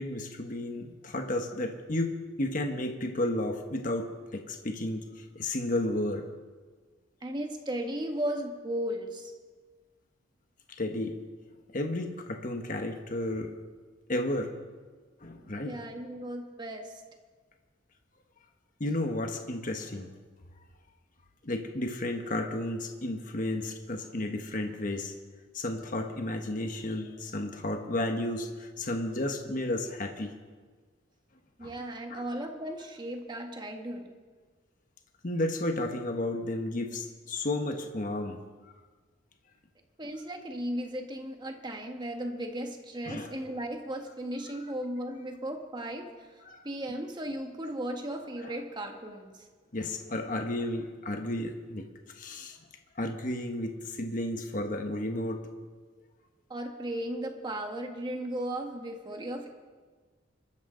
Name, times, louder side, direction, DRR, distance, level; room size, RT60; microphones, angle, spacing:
voice 1, 0.0-6.3 10.8-11.2 11.7-13.5 14.1-14.5 15.2-15.8 18.8-20.1 21.4-25.1 25.5-30.3 31.6-31.7 32.1-32.2 35.2-38.4 43.0-43.3 46.4-46.6 48.4-48.5 49.7-51.9 52.2-52.6 53.0-55.4, left 1 dB, 45° left, 4 dB, 1.3 m, -32 dB
voice 2, 7.2-9.3 15.6-16.9 31.6-34.1 40.0-46.3 46.6-49.5 56.5-59.5, right 1 dB, 25° right, 3 dB, 1.6 m, -36 dB
25.5 x 13.5 x 3.9 m, 1.4 s
head